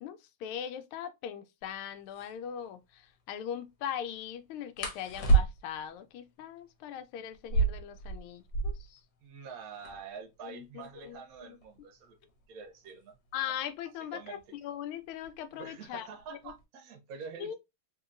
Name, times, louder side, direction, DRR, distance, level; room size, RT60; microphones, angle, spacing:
voice 1, 0.0-9.0 10.4-11.6 13.3-16.1 16.4-16.5 17.4-17.6, left 9 dB, 85° left, 1.4 m, -40 dB
sound 1, 1.6-1.7 2.1-2.3 4.8-5.9 7.3-9.0 9.3-9.4 9.6-10.2 10.8-13.4 14.4-14.7 15.1-15.5 15.9-16.6, right 4 dB, 65° left, 1.4 m, -30 dB
voice 2, 9.2-12.2 12.5-13.2 14.1-14.4 15.6-17.6, right 6 dB, 60° right, 1.0 m, -46 dB
3.6 x 2.8 x 2.4 m
omnidirectional pair, 2.3 m